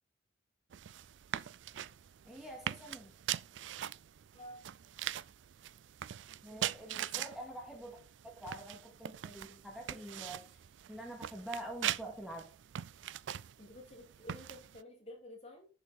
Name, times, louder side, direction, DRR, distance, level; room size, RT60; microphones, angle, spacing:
sound 1, 0.7-14.8, right 11 dB, 70° right, 0.4 m, -42 dB
voice 1, 2.2-3.1 6.4-8.0 8.2-10.6 10.9-12.4, right 1 dB, ahead, 2.2 m, -46 dB
voice 2, 4.3-4.7 6.5-6.6 6.9-7.0 13.6-15.7, left 1 dB, 35° left, 2.9 m, -51 dB
10.0 x 6.3 x 4.2 m
head